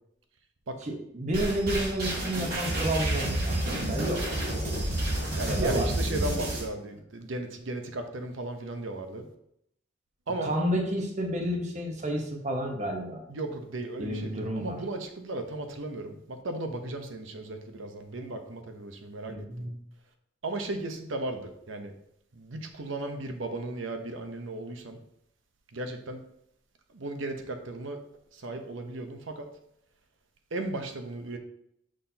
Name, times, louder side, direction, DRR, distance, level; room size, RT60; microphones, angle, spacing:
voice 1, 0.9-4.3 5.5-6.4 10.4-13.2 14.0-14.8 19.3-19.8, right 1 dB, 35° right, 2 dB, 1.0 m, -31 dB
sound 1, 1.3-6.6, right 1 dB, 55° right, 2.2 m, -30 dB
voice 2, 5.4-9.3 10.3-10.6 13.3-19.7 20.4-21.9 22.3-25.0 25.7-26.2 26.9-28.0 28.3-29.5 30.5-31.4, right 2 dB, 85° right, 6 dB, 0.8 m, -36 dB
6.3 x 5.7 x 2.8 m, 0.74 s
head